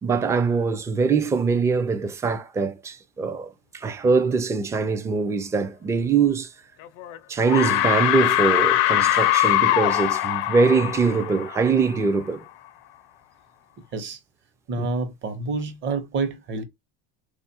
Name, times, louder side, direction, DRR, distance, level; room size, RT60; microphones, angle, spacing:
voice 1, 0.0-6.5 7.3-12.4 14.8-14.9, right 4 dB, 10° right, 0.3 m, -23 dB
sound 1, 6.8-7.2 7.5-12.1, left 14 dB, 75° left, 0.5 m, -22 dB
voice 2, 14.7-16.6, right 3 dB, 40° right, 0.9 m, -28 dB
3.8 x 2.4 x 2.8 m
cardioid pair, 135°, 29 cm